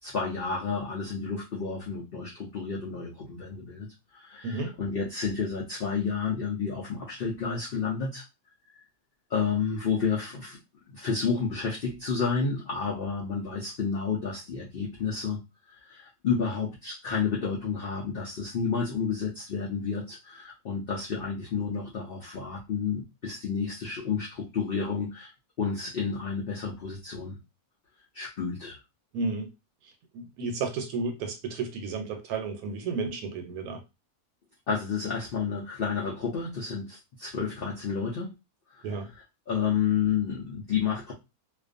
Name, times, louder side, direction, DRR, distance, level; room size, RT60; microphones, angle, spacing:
voice 1, 0.0-3.9 4.1-8.2 9.3-10.6 10.9-15.4 15.7-25.3 25.6-27.4 28.1-28.8 34.7-38.3 38.7-38.9 39.5-41.1, left 5 dB, 60° left, 0.5 m, -30 dB
voice 2, 29.1-29.5 30.1-33.8 38.8-39.1, right 4 dB, 80° right, 1.1 m, -32 dB
2.4 x 2.2 x 2.5 m
omnidirectional pair, 1.6 m